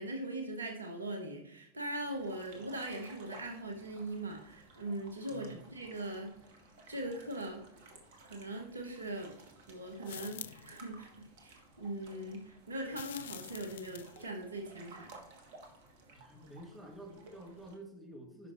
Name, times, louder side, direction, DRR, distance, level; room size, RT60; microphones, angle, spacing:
voice 1, 0.0-6.4 6.9-7.6 8.2-9.4 9.7-15.1, right 1 dB, 75° right, 4 dB, 1.3 m, -41 dB
sound 1, 2.0-17.8, right 2 dB, 50° right, 1.7 m, -57 dB
voice 2, 5.3-5.6 16.1-18.5, right 1 dB, 5° right, -1 dB, 2.1 m, -50 dB
sound 2, 10.0-10.8 12.9-14.3, left 11 dB, 60° left, 0.3 m, -47 dB
10.5 x 5.5 x 3.1 m, 0.77 s
figure-of-eight pair, 90°, 0 cm